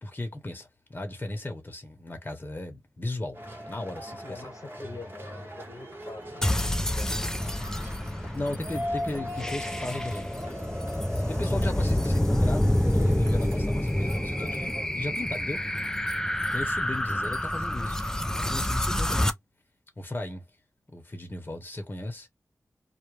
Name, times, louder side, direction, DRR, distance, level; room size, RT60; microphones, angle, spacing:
voice 1, 0.0-4.4 8.3-10.3 11.3-15.6 16.5-19.4 20.0-20.4 20.9-22.3, left 2 dB, 35° left, 0.9 m, -36 dB
sound 1, 3.3-14.9, equal, 40° right, 1.1 m, -40 dB
voice 2, 4.2-7.3, left 3 dB, 70° left, 1.0 m, -44 dB
sound 2, 6.4-19.3, left 1 dB, 10° left, 0.4 m, -28 dB
2.3 x 2.1 x 3.1 m
wide cardioid pair, 60°, 6 cm